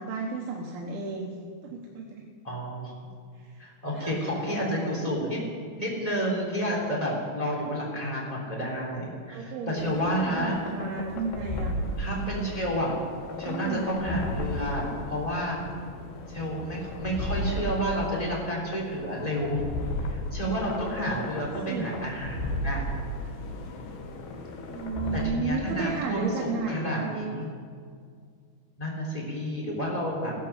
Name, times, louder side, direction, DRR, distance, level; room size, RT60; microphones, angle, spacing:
voice 1, 0.0-1.4 1.6-2.2 3.3-5.0 9.3-11.8 13.4-14.0 21.6-22.0 24.7-27.5, right 4 dB, 80° right, 0 dB, 3.0 m, -33 dB
voice 2, 2.4-2.9 3.6-5.4 5.8-10.6 12.0-13.0 13.4-15.6 16.3-19.6 20.1-22.8 23.7-24.1 25.1-27.5 28.8-30.3, equal, 10° left, -3 dB, 3.0 m, -30 dB
sound 1, 9.8-25.3, left 1 dB, 85° left, 3.4 m, -35 dB
15.0 x 12.5 x 7.3 m, 2.1 s
omnidirectional pair, 4.4 m